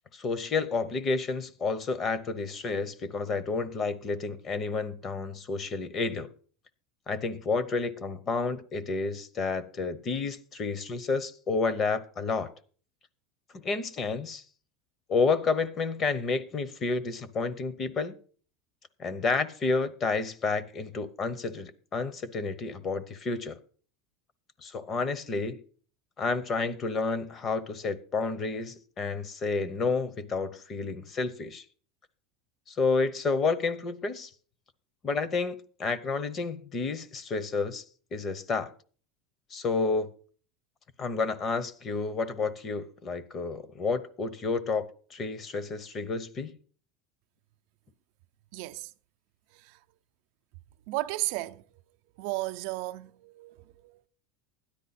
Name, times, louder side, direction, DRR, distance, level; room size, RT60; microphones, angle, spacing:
voice 1, 0.1-6.3 7.1-12.5 13.6-14.4 15.1-18.1 19.0-23.6 24.6-25.6 26.2-31.6 32.7-34.3 35.0-37.8 38.1-38.7 39.5-40.1 41.0-44.9 45.1-46.5, left 4 dB, 25° left, 0.9 m, -30 dB
voice 2, 48.5-48.9 49.5-49.8 50.9-51.6 52.2-54.1, right 19 dB, 60° right, 0.5 m, -34 dB
13.0 x 10.0 x 4.2 m
supercardioid pair, 155°, 0 cm